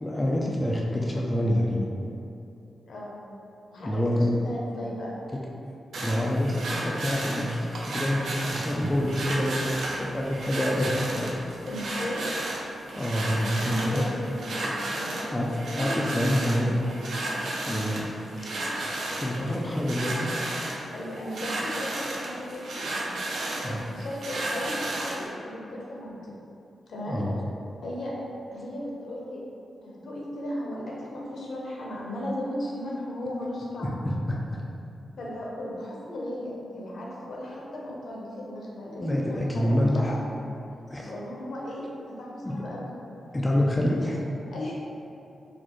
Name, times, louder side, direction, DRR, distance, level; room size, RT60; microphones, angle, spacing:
voice 1, 0.0-1.9 3.8-4.3 5.9-7.6 7.9-9.6 10.0-11.3 13.0-14.0 15.3-15.5 15.7-16.8 17.6-18.1 19.2-20.4 23.6-23.8 27.1-27.3 34.0-34.4 39.0-40.2 40.9-41.1 42.4-42.6 43.3-44.2, left 1 dB, 15° left, -3 dB, 0.3 m, -26 dB
voice 2, 2.9-3.2 3.7-5.2 11.7-12.2 13.6-15.9 16.2-16.5 16.8-17.2 20.9-22.8 23.7-26.3 26.9-27.2 27.8-28.1 28.5-29.4 29.8-34.0 35.2-40.2 41.0-43.0 44.5-44.8, left 1 dB, 70° left, -4 dB, 0.7 m, -36 dB
sound 1, 5.9-25.3, right 1 dB, 80° right, 0.5 m, -33 dB
4.2 x 2.5 x 3.0 m, 2.7 s
wide cardioid pair, 120°, 0 cm